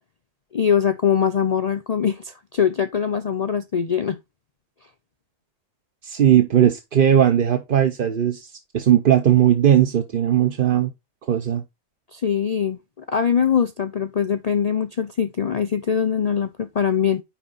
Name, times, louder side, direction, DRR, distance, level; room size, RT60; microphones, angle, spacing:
voice 1, 0.5-4.2 12.1-17.2, left 7 dB, 90° left, 0.3 m, -22 dB
voice 2, 6.0-10.9 11.3-11.6, right 10 dB, 45° right, 0.8 m, -18 dB
10.0 x 3.7 x 4.0 m
omnidirectional pair, 1.4 m